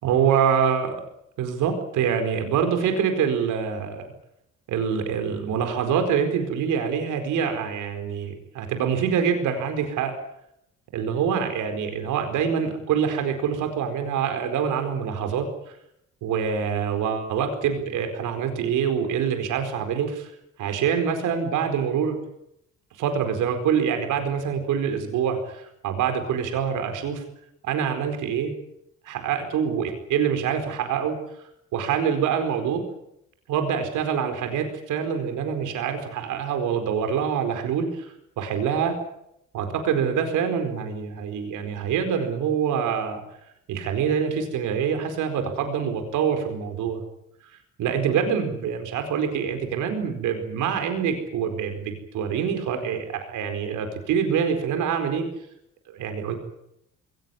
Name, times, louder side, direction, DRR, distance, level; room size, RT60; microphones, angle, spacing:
voice 1, 0.0-0.9 1.4-4.1 4.7-10.1 10.9-15.7 16.2-20.3 20.6-22.1 23.0-27.2 27.6-28.5 29.1-31.2 31.7-32.8 33.5-39.0 39.5-43.2 43.7-47.0 47.8-55.2 55.9-56.4, right 7 dB, 90° right, 6 dB, 4.6 m, -25 dB
22.0 x 19.0 x 9.8 m, 0.79 s
cardioid pair, 90°, 30 cm